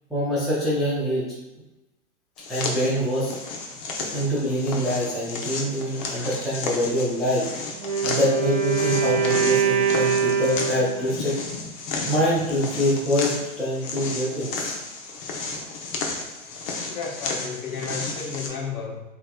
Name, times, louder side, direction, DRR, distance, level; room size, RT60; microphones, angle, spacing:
voice 1, 0.1-1.3 2.5-3.3 4.1-7.5 8.0-11.3 12.1-14.7, equal, ahead, -9 dB, 0.3 m, -25 dB
sound 1, 2.4-18.5, left 3 dB, 35° left, 0.7 m, -33 dB
Wind instrument woodwind instrument, 7.7-11.2, right 6 dB, 55° right, 1.2 m, -23 dB
voice 2, 16.9-19.0, left 5 dB, 80° left, 0 dB, 1.2 m, -32 dB
5.4 x 3.0 x 2.2 m, 1.0 s
hypercardioid pair, 125°, 42 cm